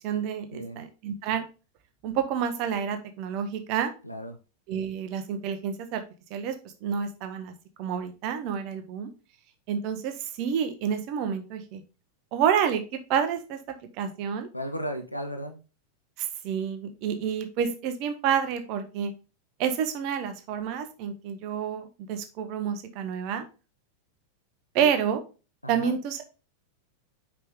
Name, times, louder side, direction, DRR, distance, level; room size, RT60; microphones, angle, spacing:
voice 1, 0.0-1.4 2.0-3.9 4.7-6.0 6.3-6.5 6.8-7.5 7.8-9.1 9.7-11.8 12.3-14.5 16.2-19.1 19.6-23.4 24.7-25.2 25.7-26.2, right 8 dB, 45° right, 7 dB, 1.0 m, -29 dB
voice 2, 0.5-0.8 4.0-4.4 14.5-15.6 24.8-24.9 25.6-26.0, equal, 85° left, 6 dB, 0.9 m, -35 dB
5.5 x 4.9 x 3.7 m, 0.32 s
figure-of-eight pair, 90°, 0 cm